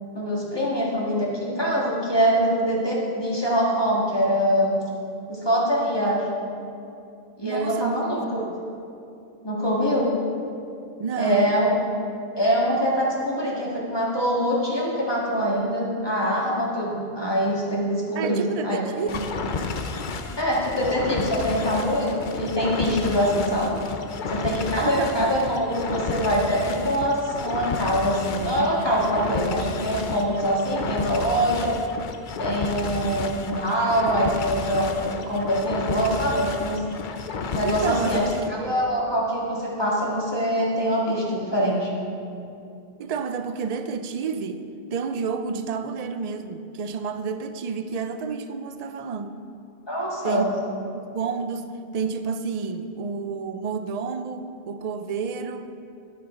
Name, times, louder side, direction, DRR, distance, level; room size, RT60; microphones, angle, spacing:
voice 1, 0.1-4.8 5.3-6.2 7.4-8.4 9.4-10.1 11.2-11.7 12.4-18.8 20.4-23.8 24.3-31.8 32.4-36.8 37.5-38.2 38.6-41.9 49.9-50.5, equal, 20° left, -4 dB, 1.7 m, -24 dB
voice 2, 7.4-8.7 11.0-11.5 18.2-19.4 24.8-25.4 37.6-38.8 43.0-49.4 50.2-50.5 50.9-55.8, right 5 dB, 50° right, 9 dB, 0.4 m, -30 dB
sound 1, 19.1-38.5, left 4 dB, 55° left, 0.7 m, -32 dB
12.0 x 6.6 x 4.9 m, 2.6 s
omnidirectional pair, 1.2 m